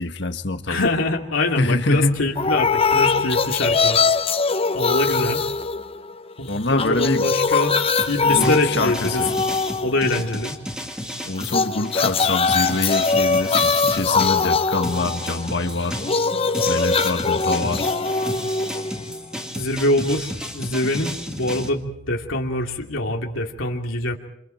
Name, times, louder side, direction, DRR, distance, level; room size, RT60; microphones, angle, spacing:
voice 1, 0.0-0.8 1.6-2.2 6.5-7.3 8.3-9.3 11.2-16.0 16.7-17.9, left 2 dB, 60° left, 7 dB, 1.6 m, -25 dB
voice 2, 0.7-4.0 4.7-5.4 6.4-7.8 8.1-9.2 9.8-10.6 19.6-24.2, left 2 dB, 85° left, 1 dB, 2.7 m, -24 dB
sound 1, 2.4-6.3 6.6-10.4 11.4-19.4, left 4 dB, 30° left, 0.8 m, -22 dB
sound 2, 8.0-14.5 14.8-21.7, equal, 5° right, 2.3 m, -33 dB
28.5 x 27.5 x 4.5 m, 0.75 s
head